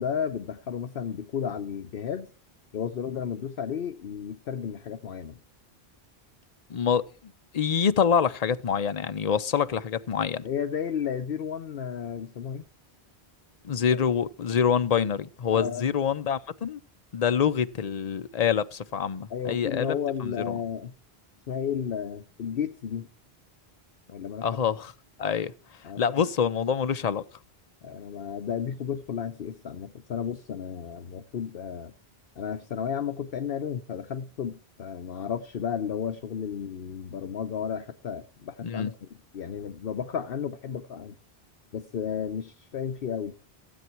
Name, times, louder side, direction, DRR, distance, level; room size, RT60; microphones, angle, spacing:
voice 1, 0.0-2.3 2.7-5.4 10.4-12.7 13.7-14.0 15.5-15.9 19.3-20.9 21.5-23.1 24.1-24.5 25.8-26.2 27.8-31.9 32.4-39.1 39.3-41.2 41.7-43.4, left 8 dB, 65° left, 1.0 m, -33 dB
voice 2, 6.7-7.0 7.5-10.4 13.6-16.8 17.1-19.9 20.2-20.6 24.4-24.9 25.2-25.5 26.0-27.2 38.6-38.9, left 7 dB, 45° left, 0.6 m, -26 dB
15.5 x 8.1 x 4.5 m
omnidirectional pair, 1.1 m